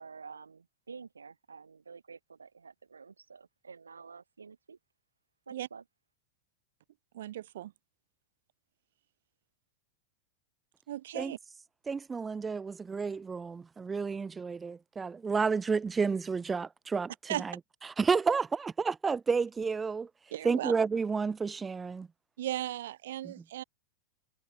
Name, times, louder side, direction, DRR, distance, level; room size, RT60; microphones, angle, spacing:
voice 1, 0.0-4.8 5.5-5.8, right 5 dB, 75° right, 1.7 m, -50 dB
voice 2, 7.1-7.7 10.9-11.4 17.3-17.5 20.3-20.7 22.4-23.6, right 13 dB, 60° right, 1.4 m, -36 dB
voice 3, 11.9-17.1 18.0-20.1 20.4-22.1, right 5 dB, 15° right, 0.4 m, -30 dB
figure-of-eight pair, 90°, 0 cm